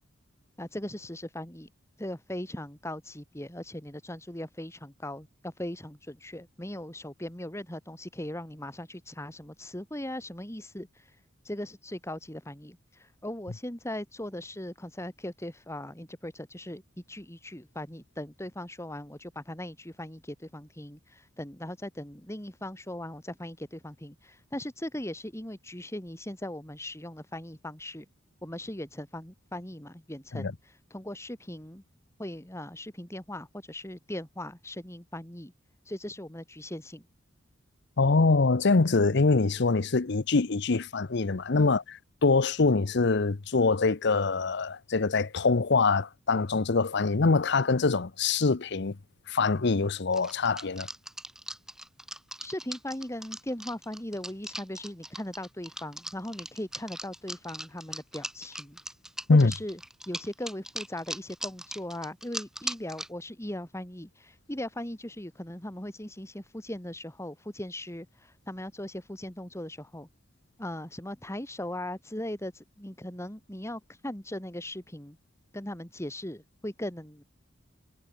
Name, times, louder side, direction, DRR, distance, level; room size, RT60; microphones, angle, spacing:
voice 1, 0.6-1.7 2.0-11.2 11.4-16.8 17.1-28.1 28.4-31.8 32.2-35.5 35.8-37.1 41.6-41.8 52.4-58.8 59.3-59.8 60.1-70.1 70.6-75.2 75.5-77.2, left 1 dB, 15° left, 2.9 m, -39 dB
voice 2, 38.0-49.0 49.3-50.9 59.3-59.5, left 3 dB, 60° left, 0.8 m, -24 dB
sound 1, 50.1-63.1, right 1 dB, 5° right, 5.4 m, -39 dB
head